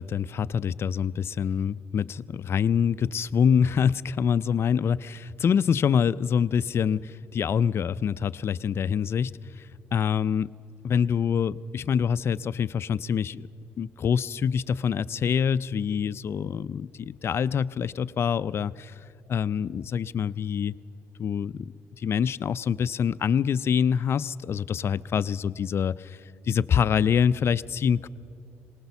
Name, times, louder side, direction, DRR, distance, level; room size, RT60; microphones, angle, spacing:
voice 1, 0.0-10.5 10.8-13.5 13.8-18.9 19.3-20.8 21.2-21.7 22.0-26.2 26.5-28.1, left 7 dB, 50° left, 18 dB, 0.4 m, -25 dB
19.5 x 19.0 x 7.0 m, 2.6 s
cardioid pair, 75°, 5 cm